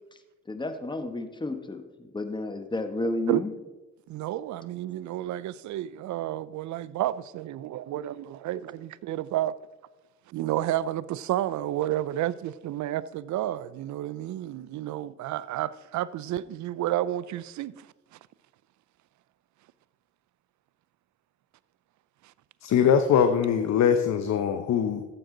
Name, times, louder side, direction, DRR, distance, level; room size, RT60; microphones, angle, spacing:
voice 1, 0.5-3.5, left 2 dB, 15° left, 1.2 m, -32 dB
voice 2, 4.1-9.5 10.3-17.9, right 13 dB, 70° right, 0.5 m, -31 dB
voice 3, 22.6-25.0, left 7 dB, 65° left, 0.8 m, -22 dB
14.5 x 7.7 x 3.8 m
cardioid pair, 90°, 30 cm